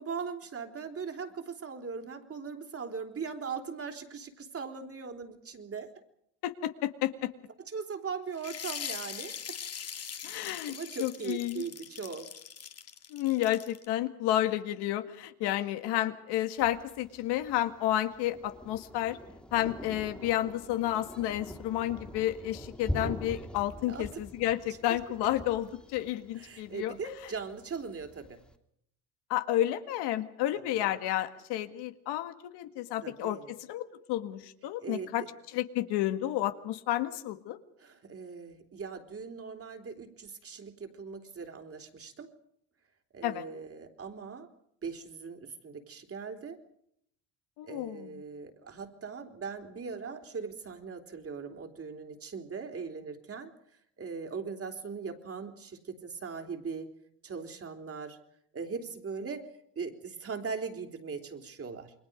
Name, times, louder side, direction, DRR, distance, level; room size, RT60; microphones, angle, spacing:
voice 1, 0.0-5.9 7.7-9.3 10.7-12.3 23.9-24.1 25.2-25.3 26.4-28.4 30.7-30.8 33.0-33.5 34.8-35.1 37.8-42.3 43.1-44.5 44.8-46.6 47.6-53.5 54.0-56.9 57.2-58.2 58.5-59.5 59.8-61.9, right 5 dB, 35° right, 5 dB, 3.7 m, -40 dB
voice 2, 6.4-7.3 10.2-10.7 11.0-11.6 13.1-19.2 19.5-26.9 29.3-35.2 35.5-37.6 43.2-43.5 47.6-48.1, left 13 dB, 80° left, 8 dB, 2.0 m, -31 dB
sound 1, 8.4-13.9, left 7 dB, 40° left, 1.9 m, -41 dB
Thunder, 16.6-28.5, equal, ahead, 2.9 m, -43 dB
29.0 x 22.0 x 5.3 m, 0.71 s
supercardioid pair, 95°, 40 cm